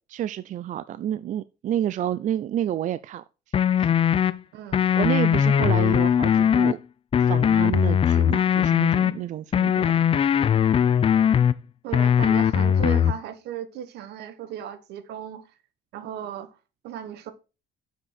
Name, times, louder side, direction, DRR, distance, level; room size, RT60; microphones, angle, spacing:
voice 1, 0.1-3.2 3.8-3.9 4.9-6.8 7.3-9.9, right 11 dB, 50° right, 0.4 m, -29 dB
sound 1, 3.5-4.3 4.7-6.7 7.1-9.1 9.5-11.5 11.9-13.1, left 8 dB, 35° left, 0.5 m, -20 dB
voice 2, 11.8-15.4 15.9-16.6 16.8-17.3, right 9 dB, 80° right, 1.1 m, -36 dB
6.8 x 6.2 x 4.2 m
cardioid pair, 110°, 17 cm